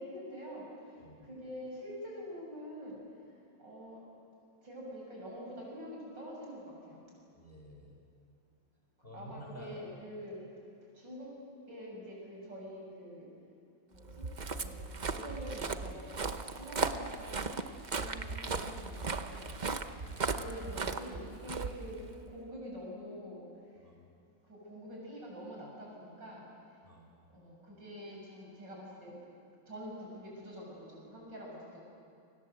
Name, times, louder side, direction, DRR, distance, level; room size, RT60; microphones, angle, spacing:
voice 1, 0.0-3.3 3.6-4.1 4.6-7.1 9.0-10.4 10.9-11.4 11.7-13.3 13.9-17.5 17.9-19.5 20.3-23.8 24.4-26.5 27.3-29.2 29.7-31.8, equal, 70° right, -3 dB, 8.3 m, -46 dB
voice 2, 7.3-8.0 9.0-9.8 19.9-20.4 23.8-24.1 26.8-27.2, equal, 30° left, 0 dB, 5.3 m, -51 dB
Walk footsteps, 14.0-22.3, right 4 dB, 35° right, 0.8 m, -37 dB
29.5 x 24.0 x 8.1 m, 2.4 s
omnidirectional pair, 2.0 m